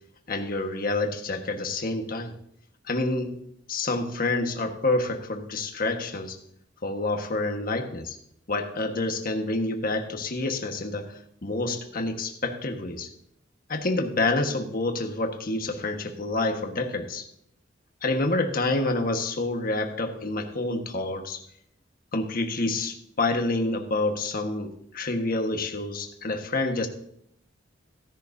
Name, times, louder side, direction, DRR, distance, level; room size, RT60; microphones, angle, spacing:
voice 1, 0.3-2.3 2.9-3.4 3.7-6.4 6.8-8.2 8.5-13.1 13.7-17.3 18.0-21.4 22.1-26.9, left 2 dB, 50° left, 5 dB, 1.4 m, -28 dB
16.5 x 11.0 x 2.7 m, 0.69 s
head